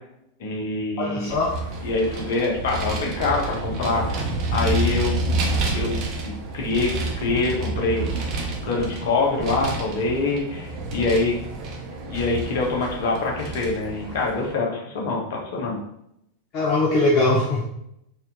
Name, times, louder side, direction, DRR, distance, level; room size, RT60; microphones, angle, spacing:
voice 1, 0.4-1.3 1.8-4.2 4.5-5.2 5.7-6.9 7.2-8.2 8.6-11.3 12.1-15.2 15.5-15.8, left 3 dB, 55° left, -2 dB, 1.3 m, -25 dB
voice 2, 1.0-1.5 16.5-17.6, left 2 dB, 40° left, -2 dB, 0.7 m, -21 dB
Vehicle, 1.3-14.5, right 2 dB, 35° right, 0.9 m, -29 dB
4.2 x 2.7 x 3.6 m, 0.77 s
figure-of-eight pair, 90°, 0 cm